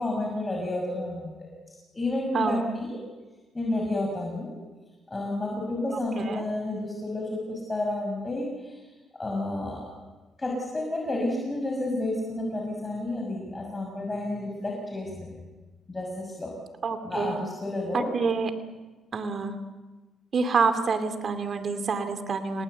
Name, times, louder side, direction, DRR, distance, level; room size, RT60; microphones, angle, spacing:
voice 1, 0.0-1.3 1.7-3.0 3.5-4.5 5.1-8.8 9.2-9.9 10.4-15.3 15.9-16.5 17.0-18.1, left 2 dB, 20° left, -1 dB, 6.2 m, -30 dB
voice 2, 5.9-6.4 16.8-17.4 17.9-18.5 19.1-19.6 20.3-22.6, right 5 dB, 50° right, 8 dB, 2.7 m, -27 dB
29.5 x 19.0 x 8.0 m, 1.2 s
cardioid pair, 90°, 0 cm